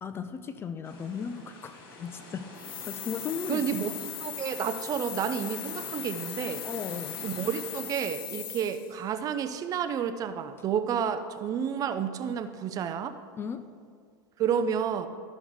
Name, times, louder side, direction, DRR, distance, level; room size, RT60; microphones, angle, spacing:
voice 1, 0.0-2.5 2.9-3.8 6.6-7.2 13.4-13.6, left 6 dB, 20° left, 10 dB, 0.4 m, -36 dB
sound 1, 0.8-7.8, left 2 dB, 75° left, 2.8 m, -47 dB
sound 2, 2.5-9.0, left 10 dB, 90° left, 0.8 m, -39 dB
voice 2, 3.5-3.9 4.2-6.6 7.2-13.2 14.4-15.1, right 8 dB, 30° right, 10 dB, 0.5 m, -30 dB
13.0 x 6.1 x 4.0 m, 2.1 s
supercardioid pair, 135°, 11 cm